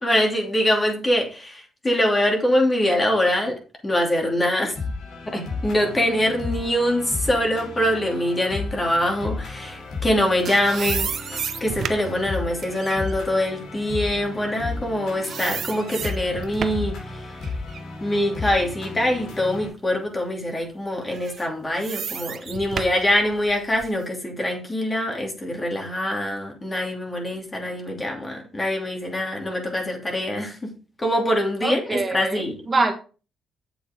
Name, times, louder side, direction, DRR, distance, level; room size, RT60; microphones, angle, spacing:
voice 1, 0.0-4.7 5.3-17.5 18.0-30.7 31.0-32.6, left 1 dB, 20° left, 1 dB, 2.8 m, -24 dB
sound 1, 4.7-19.7, left 3 dB, 75° left, 3.4 m, -34 dB
sound 2, 10.0-14.9 15.2-17.0 17.4-19.4 19.9-20.0 21.0-24.0, right 7 dB, 55° right, 0.8 m, -33 dB
voice 2, 31.6-32.9, right 3 dB, 30° right, 4 dB, 1.5 m, -24 dB
8.0 x 7.7 x 3.7 m, 0.36 s
cardioid pair, 90°, 0 cm